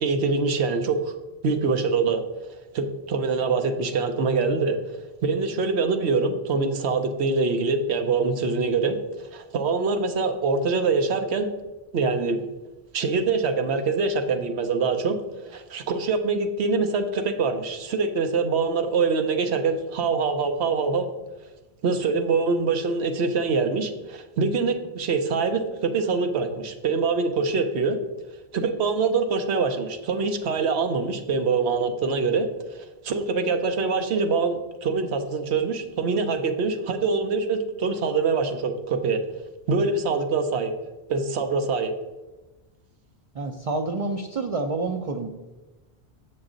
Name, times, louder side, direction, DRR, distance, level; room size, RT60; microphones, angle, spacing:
voice 1, 0.0-1.1 1.4-2.2 2.7-4.8 5.2-9.0 9.3-11.5 11.9-12.4 12.9-15.2 15.5-21.1 21.8-28.0 28.5-39.2 39.7-40.7 41.1-41.9, right 4 dB, 85° right, 7 dB, 1.0 m, -24 dB
voice 2, 43.4-45.3, right 3 dB, 45° right, 3 dB, 0.5 m, -28 dB
7.1 x 5.9 x 3.8 m, 1.1 s
omnidirectional pair, 1.1 m